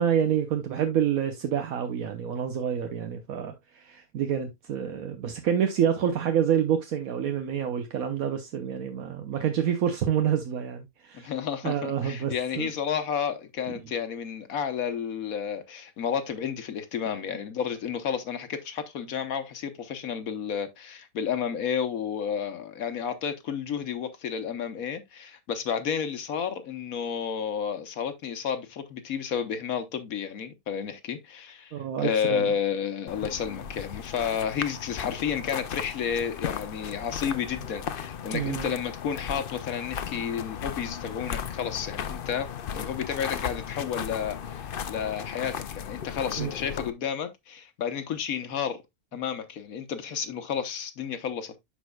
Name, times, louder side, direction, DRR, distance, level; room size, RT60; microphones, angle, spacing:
voice 1, 0.0-11.3 11.6-12.7 31.7-32.5 38.3-38.7 46.4-46.5, right 9 dB, 75° right, 1.3 m, -28 dB
voice 2, 11.1-42.5 42.7-48.8 49.1-51.5, left 7 dB, 75° left, 1.5 m, -31 dB
sound 1, 33.1-46.9, left 8 dB, 55° left, 0.6 m, -36 dB
11.5 x 4.6 x 2.3 m
omnidirectional pair, 1.5 m